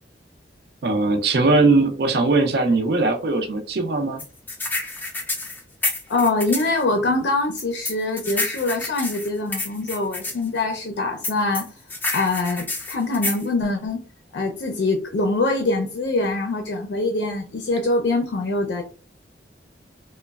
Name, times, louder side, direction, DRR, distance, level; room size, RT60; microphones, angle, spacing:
voice 1, 0.8-4.2, right 3 dB, 60° right, 5 dB, 0.5 m, -20 dB
sound 1, 4.2-6.7 7.6-10.3 11.2-13.4, left 2 dB, 10° left, 0.4 m, -28 dB
voice 2, 6.1-11.7 12.1-14.1 14.3-18.8, left 2 dB, 75° left, 3 dB, 0.5 m, -24 dB
3.0 x 2.1 x 2.3 m, 0.36 s
head